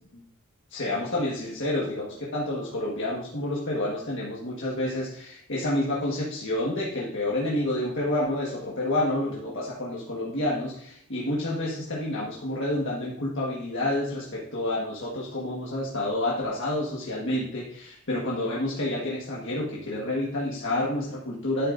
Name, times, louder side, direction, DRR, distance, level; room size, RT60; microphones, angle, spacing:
voice 1, 0.7-21.7, left 1 dB, 55° left, -5 dB, 1.5 m, -29 dB
10.0 x 7.7 x 2.6 m, 0.67 s
head